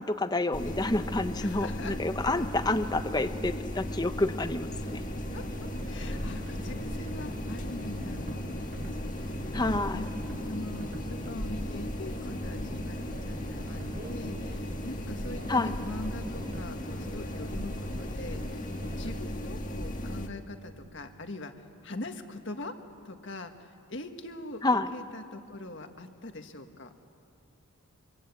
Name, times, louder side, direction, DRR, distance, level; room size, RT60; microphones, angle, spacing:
voice 1, 0.0-5.0 9.5-10.1 15.5-15.7 24.6-24.9, left 2 dB, 20° left, 10 dB, 0.8 m, -29 dB
sound 1, 0.5-20.3, left 1 dB, 35° left, 1.6 m, -36 dB
voice 2, 1.4-1.9 5.3-8.6 9.2-9.3 9.6-10.1 10.5-18.7 19.0-22.7 23.0-26.9, left 2 dB, 55° left, 6 dB, 1.7 m, -42 dB
Subway metro underground, 4.5-19.4, right 1 dB, 40° right, 1.4 m, -45 dB
25.5 x 24.5 x 8.6 m, 2.4 s
head